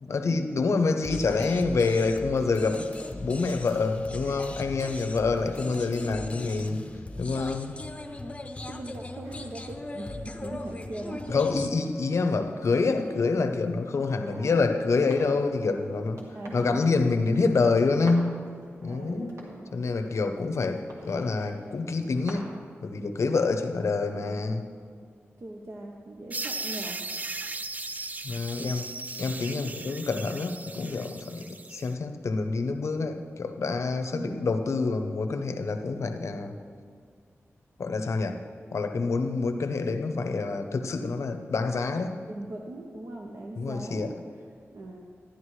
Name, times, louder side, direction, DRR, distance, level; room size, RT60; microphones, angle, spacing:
voice 1, 0.0-6.8 7.2-7.7 11.3-16.2 16.5-18.3 18.8-19.3 19.7-22.5 22.8-24.6 28.2-28.9 29.2-36.6 37.8-38.4 38.7-42.1 43.6-44.1, left 4 dB, 75° left, 7 dB, 0.7 m, -27 dB
sound 1, 1.0-11.7, left 2 dB, 25° left, 0.6 m, -39 dB
voice 2, 8.7-11.4 13.1-13.2 14.2-14.8 16.3-17.0 18.8-19.7 23.8-24.4 25.4-27.0 34.1-34.5 42.3-44.4 44.7-45.0, right 2 dB, 60° right, 0 dB, 0.8 m, -40 dB
sound 2, 8.7-22.3, right 1 dB, 80° right, 1.8 m, -52 dB
sound 3, 26.3-31.9, right 3 dB, 35° right, 0.4 m, -37 dB
12.5 x 10.5 x 3.2 m, 2.1 s
wide cardioid pair, 90°, 5 cm